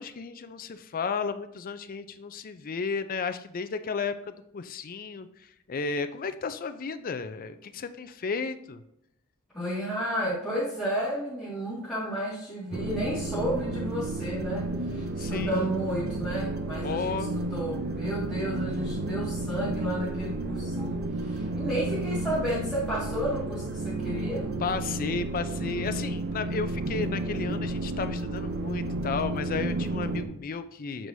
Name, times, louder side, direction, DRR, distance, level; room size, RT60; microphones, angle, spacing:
voice 1, 0.0-8.8 15.2-15.7 16.8-17.4 24.6-31.1, left 5 dB, 40° left, 10 dB, 0.4 m, -33 dB
voice 2, 9.5-24.5, equal, 5° left, -11 dB, 2.0 m, -32 dB
sound 1, 12.7-30.3, right 2 dB, 50° right, 0.5 m, -32 dB
7.5 x 4.7 x 2.7 m, 0.80 s
head